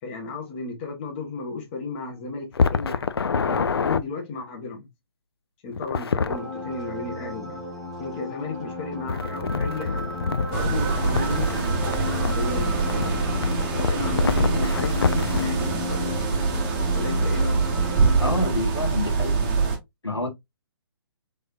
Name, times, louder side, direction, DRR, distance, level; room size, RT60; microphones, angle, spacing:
voice 1, 0.0-3.1 3.4-4.9 5.6-7.6 8.0-10.1 10.5-13.4 13.9-16.3 16.9-17.7, left 4 dB, 25° left, 0.9 m, -34 dB
sound 1, 2.5-4.0 5.7-6.4 9.1-15.5, left 5 dB, 65° left, 0.4 m, -26 dB
sound 2, 6.3-18.5, left 2 dB, ahead, 1.4 m, -34 dB
sound 3, 10.5-19.8, right 4 dB, 25° right, 0.7 m, -24 dB
voice 2, 18.2-19.4 20.0-20.3, left 1 dB, 85° left, 1.3 m, -27 dB
3.4 x 3.1 x 2.4 m
figure-of-eight pair, 130°, 14 cm